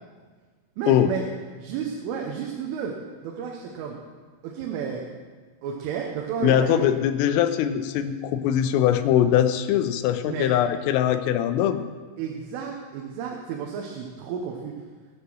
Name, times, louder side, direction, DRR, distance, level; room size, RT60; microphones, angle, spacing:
voice 1, 0.8-1.3 1.6-2.9 3.2-4.0 4.4-5.1 5.6-6.8 10.3-10.5 12.2-14.8, right 7 dB, 80° right, 1 dB, 3.6 m, -32 dB
voice 2, 6.4-11.8, left 10 dB, 85° left, 10 dB, 3.3 m, -22 dB
19.5 x 6.8 x 6.2 m, 1.5 s
omnidirectional pair, 5.7 m